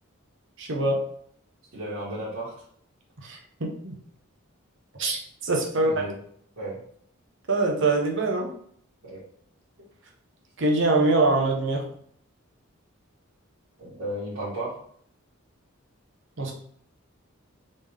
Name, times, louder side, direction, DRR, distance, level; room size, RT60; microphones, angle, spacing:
voice 1, 0.6-1.0 3.2-4.0 5.0-5.2 5.4-5.9 7.5-8.5 10.6-11.9 16.4-16.5, right 2 dB, 60° right, 1 dB, 1.0 m, -23 dB
voice 2, 1.7-2.5 5.7-6.2 6.5-6.8 9.0-9.2 13.8-14.8, right 1 dB, 75° right, -11 dB, 1.8 m, -34 dB
4.0 x 3.6 x 3.4 m, 0.63 s
head